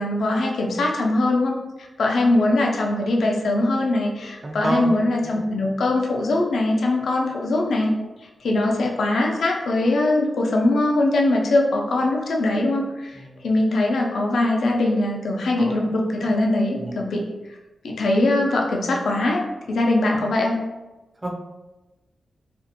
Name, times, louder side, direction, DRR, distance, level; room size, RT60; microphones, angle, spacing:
voice 1, 0.0-7.9 8.4-17.6 17.8-19.4 19.7-20.6, left 2 dB, 80° left, 0 dB, 0.4 m, -21 dB
voice 2, 4.2-5.0 5.2-5.7 13.2-13.6 15.6-15.8 16.8-17.1 21.2-21.4, right 1 dB, 25° right, 3 dB, 0.3 m, -30 dB
2.4 x 2.1 x 2.8 m, 1.1 s
wide cardioid pair, 110°, 0 cm